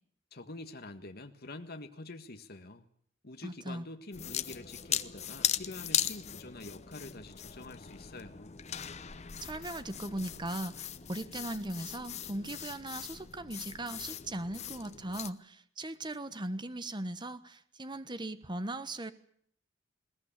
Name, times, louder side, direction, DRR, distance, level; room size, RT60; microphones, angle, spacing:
voice 1, 0.3-2.9 3.2-8.5, left 2 dB, 50° left, 7 dB, 1.6 m, -46 dB
voice 2, 3.4-3.9 9.4-19.1, right 1 dB, 25° right, 12 dB, 1.2 m, -39 dB
sound 1, 4.1-15.3, left 9 dB, 35° left, 0.9 m, -38 dB
21.0 x 19.0 x 8.6 m, 0.63 s
head